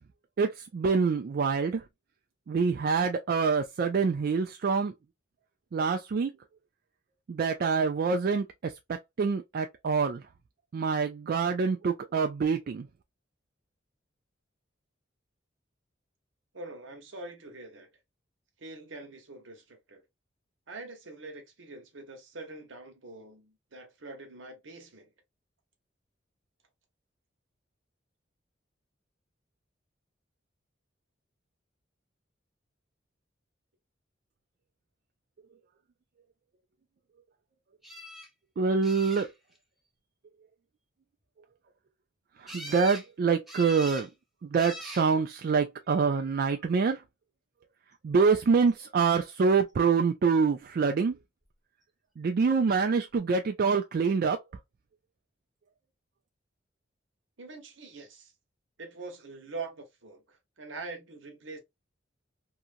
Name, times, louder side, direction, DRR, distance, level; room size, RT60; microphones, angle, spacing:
voice 1, 0.4-1.8 2.5-4.9 5.7-6.3 7.3-10.2 10.7-12.9 38.6-39.3 42.4-44.1 44.5-47.0 48.0-51.1 52.2-54.4, right 5 dB, 50° right, 0.3 m, -26 dB
voice 2, 16.5-17.9 18.6-20.0 20.7-25.1 57.4-58.3 58.8-61.6, right 3 dB, 90° right, 1.0 m, -44 dB
sound 1, 37.8-38.3 38.8-39.6 42.5-43.1 43.5-44.1 44.6-45.1 46.0-46.5 52.7-52.8 53.1-53.2, equal, ahead, 0.6 m, -43 dB
2.8 x 2.5 x 2.5 m
head